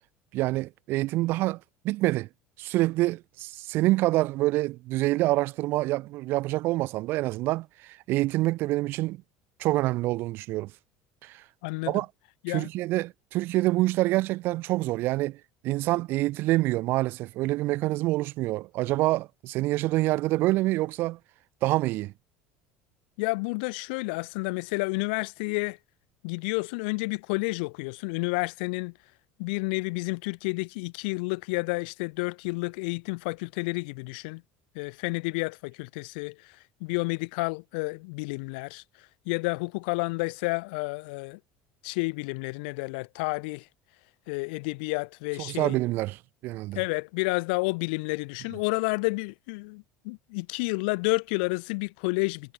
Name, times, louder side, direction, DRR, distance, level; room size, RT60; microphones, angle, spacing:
voice 1, 0.3-1.6 1.8-2.3 2.6-9.2 9.6-10.7 11.2-11.4 11.9-12.1 12.5-21.2 21.6-22.1 45.4-46.8, right 18 dB, 45° right, 0.6 m, -26 dB
voice 2, 11.6-12.0 12.4-12.7 23.2-25.8 26.2-28.9 29.4-34.4 34.7-36.5 36.8-38.8 39.2-41.4 41.8-43.7 44.3-45.8 46.7-52.5, left 29 dB, 80° left, 1.3 m, -30 dB
cardioid pair, 175°, 5 cm